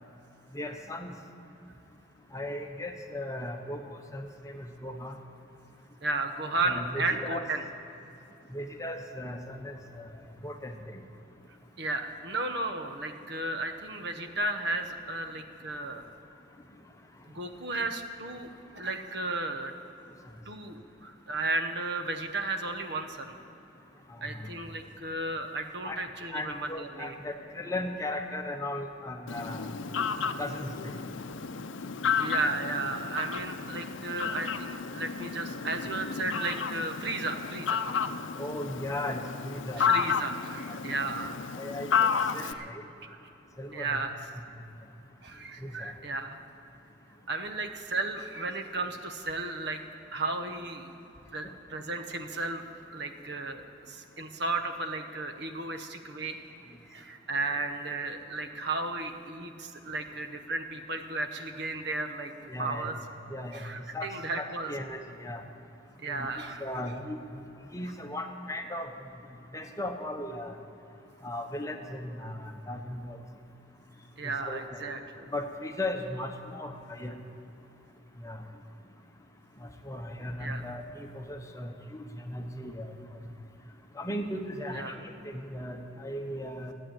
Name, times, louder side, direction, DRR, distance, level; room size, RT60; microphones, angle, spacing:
voice 1, 0.5-1.1 2.3-5.1 6.6-7.4 8.5-10.1 10.4-11.0 24.4-24.5 25.8-26.0 26.3-29.7 30.4-31.0 38.4-39.9 41.5-42.8 43.6-44.0 45.6-45.9 62.5-62.9 63.3-63.7 63.9-64.1 64.4-65.4 66.1-66.3 66.6-67.2 67.7-68.9 69.5-70.6 71.2-73.2 74.2-74.8 75.3-77.1 78.2-78.4 79.6-82.9 84.0-84.9 85.2-86.7, left 1 dB, 15° left, 5 dB, 0.9 m, -37 dB
voice 2, 6.0-7.6 11.8-16.0 17.3-19.7 20.4-23.4 24.2-27.2 32.2-37.9 39.8-41.4 42.4-42.7 43.0-43.3 43.7-44.2 45.2-46.4 47.3-49.8 50.1-50.9 51.3-56.4 56.9-62.3 62.6-62.9 63.5-64.7 66.0-66.6 74.2-75.3 80.4-80.7 84.7-85.0, right 2 dB, 60° right, 6 dB, 1.0 m, -34 dB
Fowl, 29.3-42.5, left 6 dB, 80° left, 0.6 m, -32 dB
14.5 x 8.8 x 8.9 m, 3.0 s
head